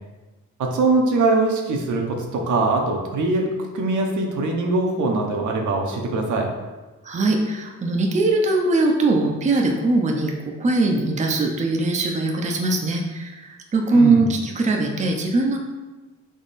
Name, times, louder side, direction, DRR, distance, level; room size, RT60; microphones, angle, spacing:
voice 1, 0.6-6.5 13.9-14.3, right 2 dB, 70° right, 1 dB, 0.8 m, -22 dB
voice 2, 7.0-15.6, right 2 dB, 25° right, 1 dB, 0.5 m, -21 dB
3.6 x 3.5 x 4.1 m, 1.2 s
cardioid pair, 100°, 31 cm